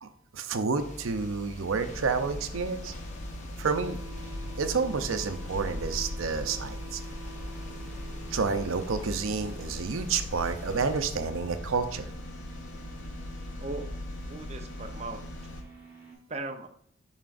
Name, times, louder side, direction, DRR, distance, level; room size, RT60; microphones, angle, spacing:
voice 1, 0.0-2.9 3.6-4.0 4.6-7.0 8.3-12.1, right 5 dB, 75° right, 8 dB, 0.6 m, -30 dB
sound 1, 0.8-11.0, equal, 35° left, 0.9 m, -44 dB
sound 2, 1.8-15.6, left 1 dB, 60° left, 0.8 m, -40 dB
sound 3, 3.6-16.1, right 3 dB, 10° right, 1.4 m, -50 dB
voice 2, 13.6-14.0 14.3-15.5 16.3-16.7, right 2 dB, 30° right, 5 dB, 0.6 m, -38 dB
7.2 x 5.7 x 2.5 m, 0.67 s
head